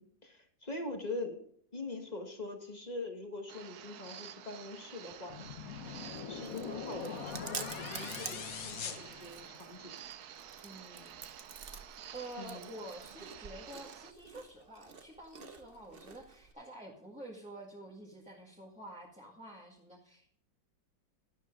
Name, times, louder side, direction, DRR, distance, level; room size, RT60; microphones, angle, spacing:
voice 1, 0.0-1.4 1.7-5.5 6.3-9.9 12.4-12.7, left 2 dB, 25° left, 3 dB, 1.6 m, -43 dB
sound 1, 3.5-14.1, right 9 dB, 65° right, 1.2 m, -50 dB
sound 2, 5.3-9.9, left 6 dB, 55° left, 1.4 m, -42 dB
Chewing mastication, 5.9-16.5, right 5 dB, 40° right, 0.9 m, -49 dB
voice 2, 10.6-11.2 11.7-20.4, right 1 dB, 5° right, -4 dB, 1.8 m, -49 dB
12.0 x 12.0 x 3.8 m, 0.63 s
omnidirectional pair, 2.0 m